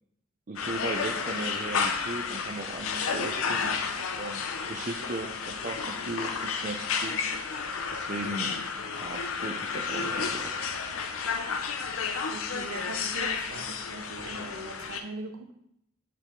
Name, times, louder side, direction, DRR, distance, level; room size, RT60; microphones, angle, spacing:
voice 1, 0.5-7.2 7.9-8.6 9.0-10.5, right 2 dB, 40° right, 4 dB, 0.5 m, -37 dB
sound 1, 0.6-15.0, left 5 dB, 90° left, 0.6 m, -32 dB
voice 2, 12.3-15.5, right 2 dB, 90° right, 5 dB, 0.8 m, -40 dB
6.8 x 4.6 x 3.7 m, 0.76 s
head